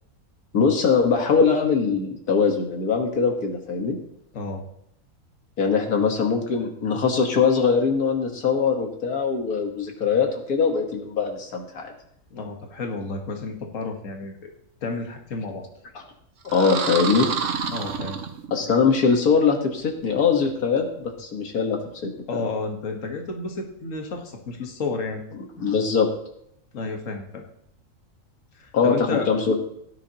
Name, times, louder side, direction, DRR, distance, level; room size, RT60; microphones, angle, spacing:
voice 1, 0.5-4.0 5.6-11.9 16.4-17.3 18.5-22.4 25.6-26.1 28.7-29.6, left 5 dB, 90° left, 3 dB, 1.9 m, -22 dB
voice 2, 12.3-14.5 14.8-15.7 17.7-18.2 22.3-25.2 26.7-27.4 28.5-29.3, left 3 dB, 60° left, 3 dB, 1.7 m, -31 dB
sound 1, 16.4-18.8, right 6 dB, 60° right, 1.2 m, -28 dB
17.0 x 9.6 x 2.9 m, 0.72 s
omnidirectional pair, 1.5 m